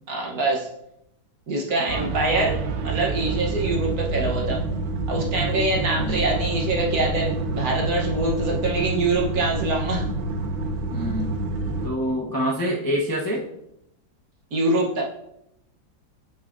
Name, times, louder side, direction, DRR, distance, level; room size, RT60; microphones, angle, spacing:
voice 1, 0.1-0.7 1.5-2.6 2.8-4.6 5.1-10.0 14.5-15.0, right 2 dB, 55° right, -1 dB, 1.5 m, -24 dB
sound 1, 1.9-11.9, right 3 dB, 85° right, 1.5 m, -27 dB
voice 2, 10.9-11.4 11.8-13.4, equal, 15° left, -4 dB, 0.7 m, -26 dB
8.6 x 6.5 x 2.6 m, 0.81 s
omnidirectional pair, 2.0 m